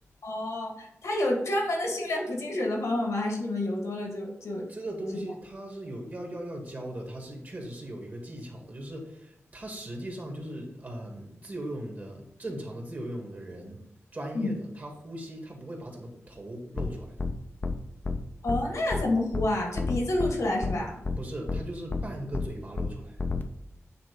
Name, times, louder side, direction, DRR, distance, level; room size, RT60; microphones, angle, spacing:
voice 1, 0.2-4.7 14.3-14.5 18.4-21.0, left 1 dB, 90° left, 0 dB, 2.1 m, -29 dB
voice 2, 4.7-13.8 14.1-17.1 21.2-23.2, right 1 dB, 35° right, 1 dB, 1.9 m, -39 dB
sound 1, 16.8-16.9 17.2-17.3 17.6-17.8 18.0-18.2 18.5-18.6 18.9-19.0 19.3-19.5 19.8-20.3 20.6-20.7 21.0-21.2 21.5-21.6 21.9-22.0 22.3-22.5 22.8-22.9 23.2-23.4, left 4 dB, 40° left, 0.6 m, -29 dB
9.2 x 3.7 x 5.3 m, 0.79 s
wide cardioid pair, 145°, 5 cm